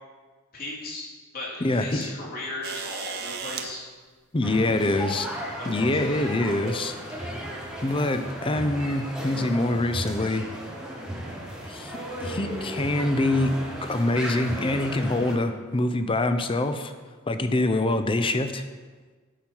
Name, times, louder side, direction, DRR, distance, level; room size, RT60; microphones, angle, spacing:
voice 1, 0.5-1.1 1.3-3.8 5.6-6.3, left 2 dB, 45° left, -5 dB, 2.6 m, -36 dB
voice 2, 1.6-2.1 4.3-5.3 5.7-7.3 7.8-10.5 11.7-13.5 13.8-16.9 17.3-18.6, left 2 dB, 25° left, 9 dB, 0.5 m, -25 dB
sound 1, 2.6-3.7 5.1-5.2 6.5-6.8 7.7-7.8, right 6 dB, 50° right, 0.7 m, -35 dB
sound 2, 4.4-15.3, equal, 5° right, 1.3 m, -35 dB
12.5 x 5.6 x 4.4 m, 1.4 s
head